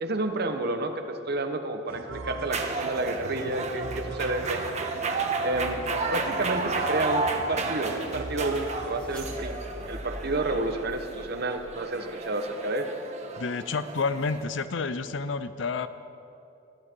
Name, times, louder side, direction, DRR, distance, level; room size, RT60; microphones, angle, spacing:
voice 1, 0.0-4.7 5.4-5.8 6.1-9.5 9.9-12.9, right 2 dB, 55° right, 6 dB, 1.1 m, -30 dB
sound 1, 1.9-8.9, right 3 dB, 85° right, 0.9 m, -39 dB
sound 2, 2.5-14.4, right 3 dB, 35° right, 1.3 m, -32 dB
sound 3, 8.4-11.9, equal, 5° left, 1.7 m, -43 dB
voice 2, 13.4-15.9, left 4 dB, 65° left, 12 dB, 0.6 m, -29 dB
20.5 x 14.0 x 4.6 m, 2.9 s
head